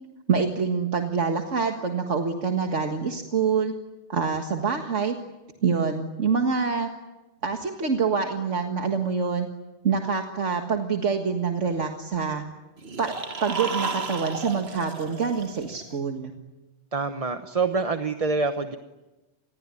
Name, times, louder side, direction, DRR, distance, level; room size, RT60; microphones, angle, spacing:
voice 1, 0.3-3.7 4.1-5.2 5.6-6.9 7.4-9.5 9.8-12.4 13.0-13.1 13.4-16.3, right 5 dB, 75° right, 4 dB, 2.0 m, -26 dB
sound 1, 12.8-15.9, right 4 dB, 55° right, 1.8 m, -33 dB
voice 2, 16.9-18.8, right 4 dB, 30° right, 7 dB, 1.1 m, -26 dB
27.0 x 20.5 x 9.8 m, 1.1 s
omnidirectional pair, 1.2 m